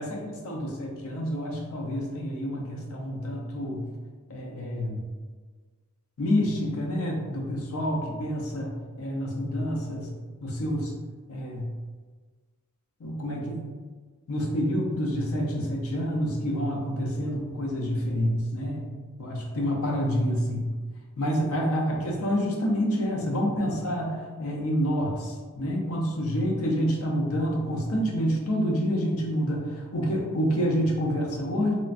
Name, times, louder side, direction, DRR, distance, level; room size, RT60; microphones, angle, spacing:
voice 1, 0.0-3.9 4.3-5.0 6.2-10.1 10.4-10.9 11.3-11.7 13.0-13.7 14.3-18.9 19.2-20.7 21.2-31.7, equal, 70° left, 0 dB, 0.6 m, -28 dB
3.0 x 2.4 x 2.4 m, 1.4 s
head